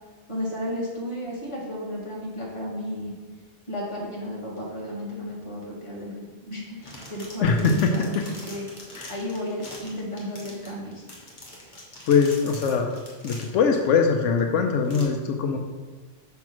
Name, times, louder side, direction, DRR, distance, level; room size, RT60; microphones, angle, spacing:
voice 1, 0.3-3.1 3.7-11.0, left 1 dB, 25° left, -5 dB, 1.7 m, -33 dB
sound 1, 6.6-13.8 14.4-14.5 14.8-15.0, left 1 dB, 40° left, 1.5 m, -43 dB
voice 2, 7.4-8.3 9.0-9.1 12.1-12.9 13.2-15.6, left 5 dB, 85° left, 4 dB, 1.0 m, -22 dB
5.9 x 3.5 x 5.9 m, 1.3 s
omnidirectional pair, 1.2 m